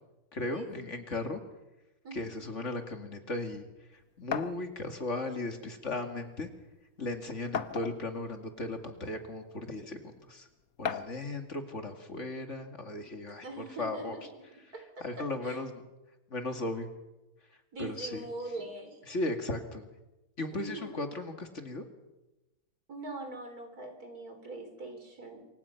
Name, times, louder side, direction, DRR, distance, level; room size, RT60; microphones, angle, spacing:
voice 1, 0.3-1.4 2.1-3.7 3.9-6.5 7.0-10.5 10.8-14.2 15.0-15.8 16.3-16.9 17.8-18.2 19.1-19.9 20.4-21.9, left 2 dB, 50° left, 5 dB, 2.5 m, -36 dB
sound 1, 4.3-4.6 5.7-5.8 6.2-6.3 7.5-8.2 9.0-9.1 10.8-11.2, left 7 dB, 65° left, 1.4 m, -34 dB
voice 2, 13.4-14.2 14.7-15.6 17.7-19.0 20.5-21.0 22.9-25.5, right 2 dB, 75° right, 5 dB, 4.5 m, -42 dB
27.0 x 24.5 x 5.8 m, 1.0 s
omnidirectional pair, 1.6 m